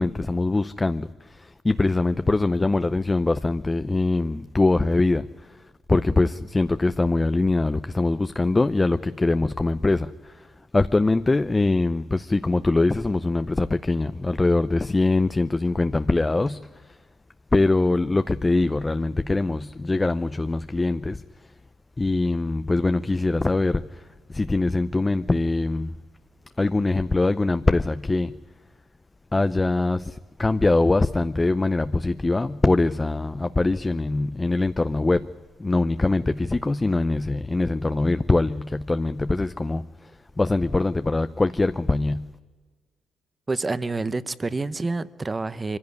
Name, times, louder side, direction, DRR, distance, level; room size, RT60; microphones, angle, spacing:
voice 1, 0.0-10.5 10.7-17.0 17.5-21.2 22.0-26.0 26.6-28.3 29.3-35.3 35.6-40.1 40.4-42.3, left 2 dB, 20° left, 0.6 m, -23 dB
voice 2, 43.5-45.8, right 3 dB, 25° right, 0.9 m, -28 dB
23.5 x 16.0 x 9.6 m
cardioid pair, 90°, 0 cm